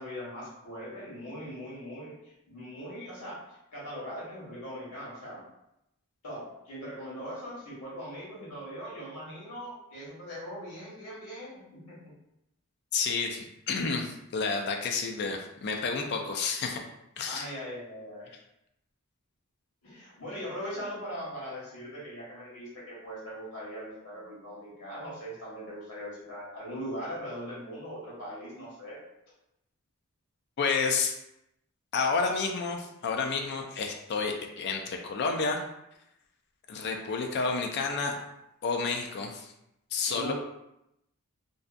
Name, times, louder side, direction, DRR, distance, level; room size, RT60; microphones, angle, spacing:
voice 1, 0.0-2.2 2.5-3.4 3.7-5.4 6.2-12.1 17.3-18.3 19.8-29.0 40.1-40.3, equal, 85° left, -6 dB, 1.3 m, -40 dB
voice 2, 12.9-16.8 17.2-17.5 30.6-31.1 31.9-35.6 36.7-38.2 38.6-39.5 39.9-40.3, left 4 dB, 50° left, 3 dB, 0.4 m, -30 dB
2.6 x 2.2 x 2.4 m, 0.84 s
head